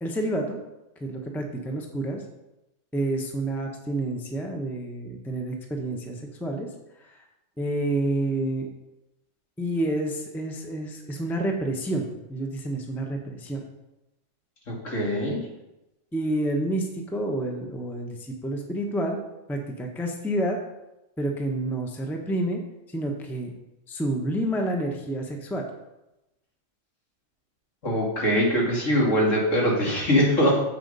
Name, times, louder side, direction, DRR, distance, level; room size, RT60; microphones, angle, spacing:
voice 1, 0.0-0.6 1.0-2.2 2.9-6.7 7.0-7.2 7.6-8.7 9.6-13.6 16.1-19.2 19.5-20.6 21.2-22.6 22.9-23.5 23.9-25.7, right 1 dB, ahead, 2 dB, 0.8 m, -29 dB
voice 2, 14.7-15.4 27.8-30.6, equal, 65° left, -4 dB, 2.7 m, -22 dB
7.2 x 6.7 x 5.4 m, 0.96 s
omnidirectional pair, 1.4 m